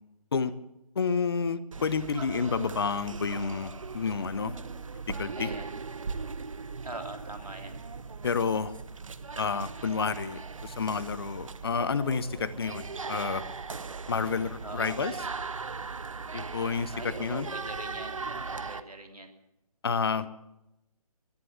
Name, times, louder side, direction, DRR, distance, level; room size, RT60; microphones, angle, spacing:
voice 1, 1.0-4.6 5.2-5.5 8.2-8.7 9.4-13.4 14.1-15.1 16.3-17.5 19.8-20.3, left 5 dB, 40° left, 16 dB, 0.9 m, -30 dB
sound 1, 1.7-18.8, right 4 dB, 60° right, 0.9 m, -39 dB
voice 2, 5.3-5.8 6.8-7.8 14.6-15.0 16.9-19.3, right 1 dB, 80° right, 4 dB, 3.2 m, -42 dB
18.0 x 11.0 x 6.9 m, 0.89 s
figure-of-eight pair, 145°, 19 cm